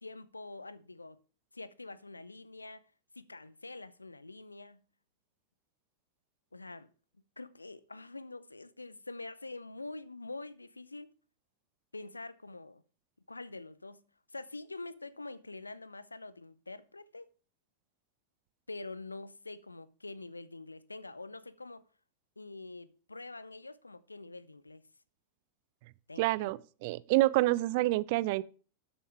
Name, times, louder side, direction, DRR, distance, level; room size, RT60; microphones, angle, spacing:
voice 1, 0.0-1.2 1.5-2.8 3.2-4.8 6.5-6.9 7.4-11.1 11.9-12.8 13.3-14.0 14.3-17.3 18.7-21.8 22.4-24.9 26.1-26.5, left 2 dB, 80° left, 0.7 m, -45 dB
voice 2, 26.2-28.4, right 19 dB, 50° right, 0.5 m, -28 dB
12.5 x 7.2 x 4.8 m
figure-of-eight pair, 90°, 0 cm